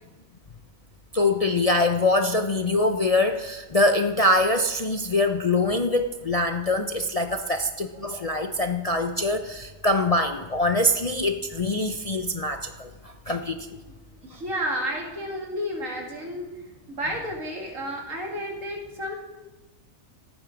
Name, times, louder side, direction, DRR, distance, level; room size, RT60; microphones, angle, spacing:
voice 1, 1.1-13.6, left 2 dB, 40° left, 5 dB, 0.6 m, -24 dB
voice 2, 14.2-16.5 16.9-19.1, equal, 75° right, 1 dB, 2.7 m, -31 dB
16.5 x 9.2 x 5.1 m, 1.1 s
omnidirectional pair, 1.4 m